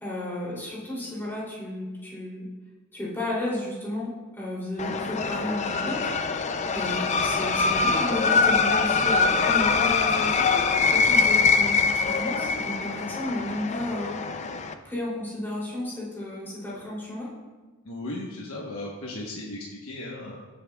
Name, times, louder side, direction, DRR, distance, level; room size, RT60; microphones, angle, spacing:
voice 1, 0.0-2.4 2.9-6.1 6.7-14.2 14.8-17.3, left 1 dB, 10° left, -7 dB, 3.0 m, -33 dB
sound 1, 4.8-14.7, left 4 dB, 30° left, 0.4 m, -23 dB
voice 2, 17.8-20.4, left 1 dB, 65° left, -3 dB, 1.2 m, -36 dB
16.0 x 7.7 x 2.4 m, 1.3 s
head